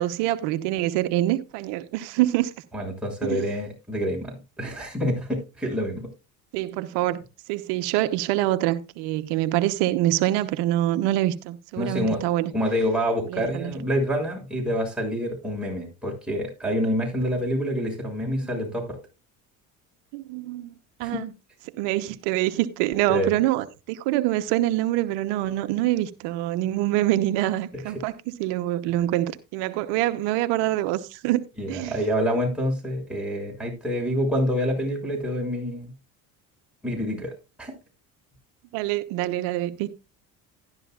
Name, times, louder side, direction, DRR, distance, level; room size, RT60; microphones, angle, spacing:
voice 1, 0.0-2.5 3.2-3.4 6.5-7.2 7.5-12.5 13.3-13.7 18.4-18.6 20.1-21.3 21.8-31.4 31.7-32.0 38.7-39.9, right 15 dB, 75° right, 1.0 m, -25 dB
voice 2, 2.7-6.1 11.8-12.2 12.5-19.0 21.0-21.2 23.1-23.3 31.6-35.9 36.8-37.3 37.6-37.7, equal, ahead, 6.6 m, -27 dB
13.0 x 11.5 x 2.4 m
hypercardioid pair, 75°, 42 cm